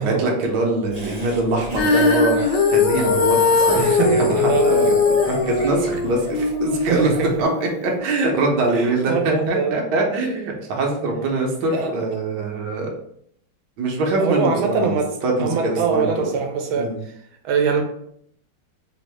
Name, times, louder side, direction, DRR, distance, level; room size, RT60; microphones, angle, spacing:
voice 1, 0.0-7.1 7.4-12.9 13.8-16.3 16.7-17.0, right 2 dB, 65° right, 0 dB, 1.3 m, -23 dB
Laughter, 0.9-7.3, left 1 dB, 40° right, 0.5 m, -33 dB
Female singing, 1.8-8.0, left 4 dB, 70° left, 1.3 m, -20 dB
voice 2, 3.7-5.0 6.8-7.3 8.7-9.7 11.7-11.9 14.2-15.1 15.4-16.9 17.4-17.8, right 5 dB, 90° right, 3 dB, 1.4 m, -22 dB
3.5 x 2.6 x 3.2 m, 0.69 s
omnidirectional pair, 2.2 m